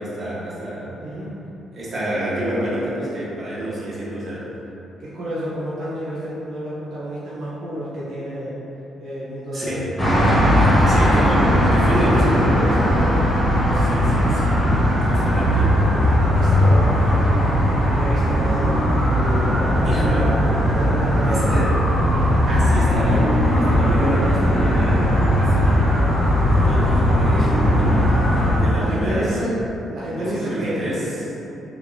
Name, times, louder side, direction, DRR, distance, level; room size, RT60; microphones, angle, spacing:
voice 1, 0.0-0.9 1.7-4.5 9.5-9.9 10.8-15.7 19.8-20.4 21.2-21.8 22.5-25.9 26.5-28.0 28.5-29.5 30.2-31.2, right 1 dB, 35° right, -8 dB, 1.0 m, -28 dB
voice 2, 0.8-1.3 5.0-8.6 9.0-10.0 16.3-20.3 20.7-22.4 28.7-29.6 29.9-30.9, right 1 dB, 70° right, -9 dB, 0.6 m, -30 dB
sound 1, 10.0-28.6, equal, 5° left, 0.9 m, -18 dB
3.3 x 2.9 x 2.6 m, 2.9 s
cardioid pair, 90°, 0 cm